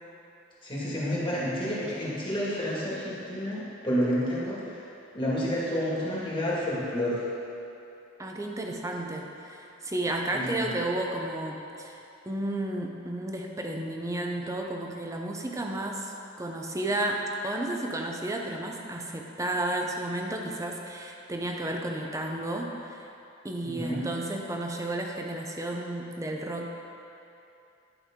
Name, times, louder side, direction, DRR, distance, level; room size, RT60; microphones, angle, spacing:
voice 1, 0.6-4.8 5.1-7.2 10.3-10.6 23.6-24.0, equal, 25° left, -8 dB, 1.9 m, -30 dB
voice 2, 8.2-23.0 23.4-26.7, right 1 dB, 15° right, 1 dB, 0.6 m, -32 dB
11.0 x 5.4 x 3.7 m, 2.8 s
head